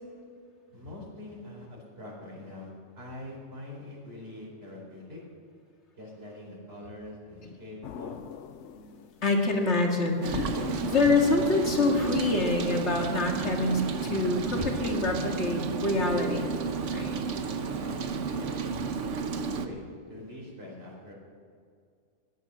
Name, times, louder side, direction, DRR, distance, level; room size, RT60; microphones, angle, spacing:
voice 1, 0.7-5.2 6.0-8.2 17.6-21.1, left 1 dB, 55° right, -3 dB, 4.5 m, -44 dB
sound 1, 7.8-9.3 10.3-12.8, left 8 dB, 80° left, 1.0 m, -39 dB
voice 2, 8.7-10.6 10.9-16.5 16.9-17.2, left 3 dB, 65° left, 1 dB, 2.3 m, -26 dB
Rain, 10.2-19.7, right 5 dB, 75° right, 1.2 m, -32 dB
15.5 x 11.5 x 6.2 m, 2.2 s
omnidirectional pair, 1.3 m